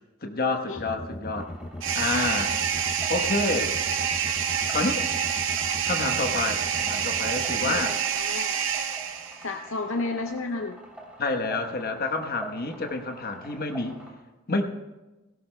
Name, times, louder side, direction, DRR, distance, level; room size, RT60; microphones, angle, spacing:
voice 1, 0.2-1.5 1.9-2.6 3.1-3.8 4.7-5.1 5.8-8.0 11.2-14.0 14.5-14.6, left 3 dB, 50° left, 5 dB, 1.1 m, -28 dB
sound 1, 0.7-7.8, left 1 dB, 20° left, 0.5 m, -38 dB
sound 2, 1.3-14.1, right 1 dB, 5° right, 3.1 m, -46 dB
sound 3, 1.8-9.5, right 8 dB, 65° right, 0.7 m, -27 dB
voice 2, 8.1-8.5 9.4-10.8, left 3 dB, 70° left, 4 dB, 0.6 m, -31 dB
18.5 x 16.5 x 2.2 m, 1.1 s
head